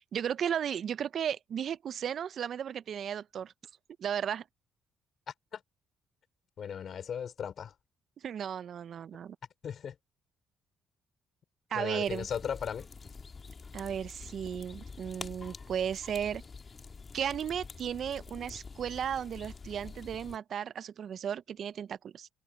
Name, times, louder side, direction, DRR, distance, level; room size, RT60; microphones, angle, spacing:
voice 1, 0.1-3.5 4.0-4.4 8.2-9.4 11.7-12.3 13.7-16.4 17.1-22.3, right 8 dB, 60° right, 0.4 m, -35 dB
voice 2, 6.6-7.7 9.6-10.0 11.7-12.9, left 8 dB, 60° left, 4.4 m, -36 dB
sound 1, 12.0-20.4, left 4 dB, 35° left, 1.5 m, -47 dB
cardioid pair, 90°, 0 cm